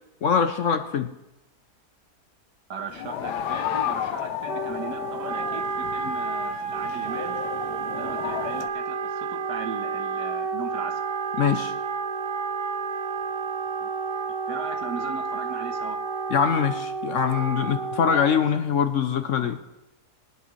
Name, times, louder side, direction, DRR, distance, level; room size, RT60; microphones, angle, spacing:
voice 1, 0.2-1.1 11.4-11.7 16.3-19.6, left 7 dB, 60° left, 8 dB, 0.9 m, -23 dB
voice 2, 2.7-7.4 7.9-11.0 13.8-13.9 14.5-16.0, right 5 dB, 75° right, 6 dB, 1.7 m, -38 dB
sound 1, 2.9-8.7, left 10 dB, 80° left, 1.2 m, -32 dB
Wind instrument woodwind instrument, 4.5-18.5, right 5 dB, 55° right, 0.7 m, -30 dB
21.5 x 10.5 x 3.2 m, 0.92 s
omnidirectional pair, 1.8 m